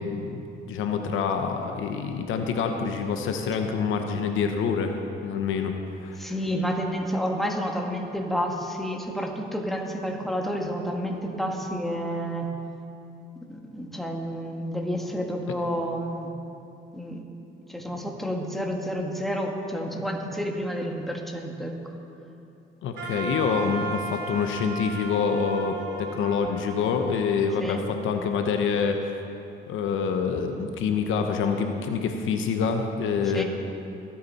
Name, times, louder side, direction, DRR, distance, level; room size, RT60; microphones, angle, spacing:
voice 1, 0.0-4.9 5.2-6.3 22.8-29.1 29.7-33.4, left 5 dB, 85° left, 5 dB, 1.0 m, -26 dB
voice 2, 6.2-12.5 13.5-16.3 16.9-17.2 17.7-21.7 27.6-27.8 33.3-33.4, equal, ahead, 0 dB, 1.8 m, -30 dB
Wind instrument woodwind instrument, 23.0-28.0, right 4 dB, 75° right, 2.4 m, -36 dB
22.0 x 8.6 x 4.2 m, 2.7 s
cardioid pair, 90°, 20 cm